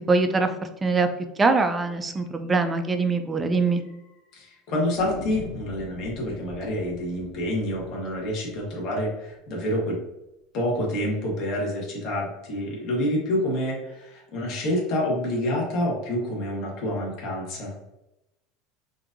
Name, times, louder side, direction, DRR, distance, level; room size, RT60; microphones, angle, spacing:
voice 1, 0.1-0.5 0.8-1.1 1.4-3.8, right 3 dB, 15° right, 7 dB, 0.4 m, -22 dB
sound 1, 2.1-2.3 2.6-2.7 3.0-3.1 3.7-4.2 5.0-9.7, left 2 dB, 85° left, 1.4 m, -43 dB
voice 2, 4.3-10.0 10.5-17.7, left 1 dB, 45° left, -3 dB, 1.3 m, -28 dB
5.8 x 2.6 x 2.6 m, 0.90 s
cardioid pair, 155°, 0 cm